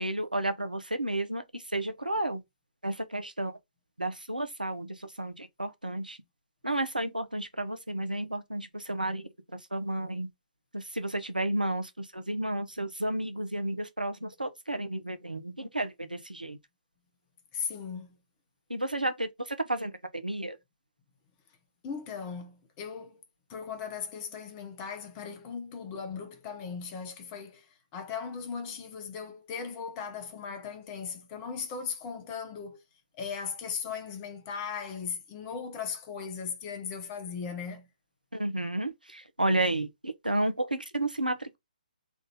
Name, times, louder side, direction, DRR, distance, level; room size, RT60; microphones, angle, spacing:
voice 1, 0.0-1.4 1.7-2.4 2.8-3.5 4.0-4.9 5.2-6.2 6.6-9.2 9.7-10.3 10.7-16.6 18.7-20.6 38.3-41.6, right 1 dB, 85° right, 0.8 m, -32 dB
voice 2, 17.5-18.2 21.8-23.2 23.5-32.8 33.1-37.9, left 6 dB, 20° left, 0.7 m, -38 dB
3.5 x 2.6 x 3.9 m
figure-of-eight pair, 135°, 4 cm